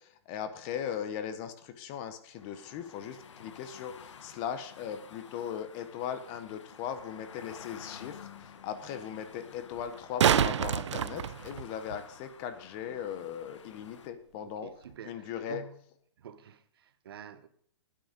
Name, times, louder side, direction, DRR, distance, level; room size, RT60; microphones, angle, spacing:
voice 1, 0.0-14.7 15.0-15.6, left 8 dB, 25° left, 0.8 m, -38 dB
sound 1, 2.4-14.1, left 7 dB, 80° left, 0.9 m, -51 dB
Chairs Break Crash pieces move, 7.0-7.1 9.8-12.0 14.8-14.9, right 9 dB, 75° right, 0.5 m, -27 dB
voice 2, 14.4-15.8 16.2-17.5, right 8 dB, 55° right, 0.9 m, -48 dB
9.9 x 9.4 x 5.1 m
hypercardioid pair, 160°, 15 cm